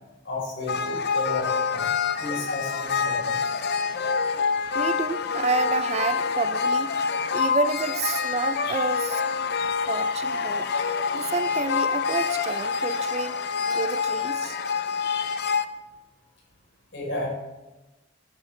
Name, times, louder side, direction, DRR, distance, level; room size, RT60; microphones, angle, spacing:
voice 1, 0.2-3.4 16.9-17.3, left 2 dB, 70° left, -1 dB, 3.8 m, -33 dB
sound 1, 0.7-15.7, left 5 dB, 55° left, 0.5 m, -26 dB
voice 2, 4.5-6.9 7.3-9.4 9.9-10.7 11.1-14.6, right 4 dB, 35° right, 12 dB, 0.4 m, -29 dB
12.5 x 9.9 x 3.2 m, 1.1 s
head